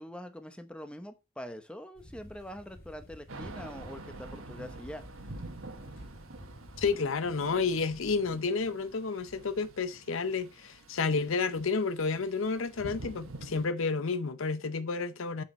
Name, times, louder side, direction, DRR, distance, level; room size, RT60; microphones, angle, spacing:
voice 1, 0.0-5.0, equal, 5° left, 0.8 m, -44 dB
sound 1, 2.0-6.9, left 1 dB, 50° left, 2.8 m, -50 dB
Thunder / Rain, 3.3-13.6, right 2 dB, 80° right, 1.3 m, -47 dB
voice 2, 6.8-15.4, left 4 dB, 75° left, 0.7 m, -30 dB
8.6 x 5.0 x 4.2 m
head